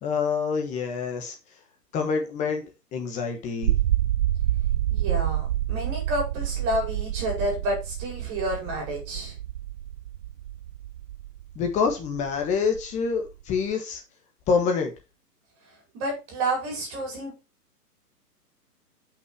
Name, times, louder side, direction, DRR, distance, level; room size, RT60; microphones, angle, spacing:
voice 1, 0.0-1.3 1.9-3.7 11.5-14.0 14.5-14.9, left 5 dB, 15° left, 1.3 m, -26 dB
sound 1, 3.6-13.7, right 12 dB, 70° right, 0.6 m, -28 dB
voice 2, 4.9-9.3 15.9-17.3, right 1 dB, 25° right, 4.9 m, -30 dB
7.9 x 6.0 x 4.7 m
hypercardioid pair, 145°, 48 cm